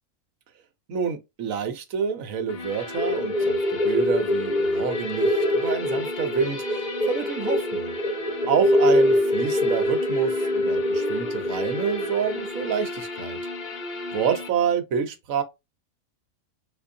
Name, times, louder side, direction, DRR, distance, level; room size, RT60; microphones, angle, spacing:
voice 1, 0.9-7.9 8.5-13.4 14.1-15.4, right 7 dB, 75° right, 1.2 m, -28 dB
sound 1, 2.5-14.5, left 2 dB, 50° left, 1.1 m, -35 dB
sound 2, 3.0-12.8, left 1 dB, 30° right, 1.4 m, -24 dB
3.9 x 2.6 x 2.6 m
omnidirectional pair, 1.5 m